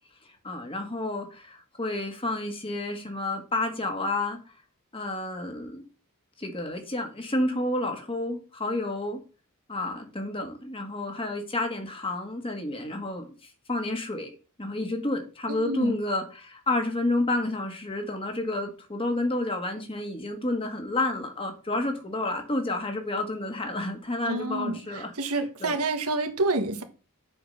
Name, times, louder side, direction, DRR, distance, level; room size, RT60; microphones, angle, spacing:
voice 1, 0.4-4.4 4.9-5.8 6.4-9.2 9.7-13.3 13.7-14.3 14.6-25.8, left 2 dB, 25° left, 1.7 m, -30 dB
voice 2, 15.5-16.0 24.2-26.8, right 2 dB, 90° right, 1.4 m, -28 dB
7.3 x 5.0 x 6.4 m
head